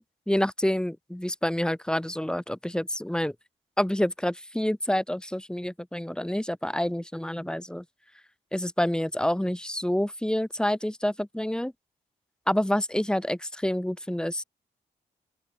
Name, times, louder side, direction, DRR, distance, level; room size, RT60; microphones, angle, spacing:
voice 1, 0.0-3.3 3.8-7.8 8.5-11.7 12.5-14.4, left 1 dB, 5° left, 0.9 m, -28 dB
open air
hypercardioid pair, 45°, 18 cm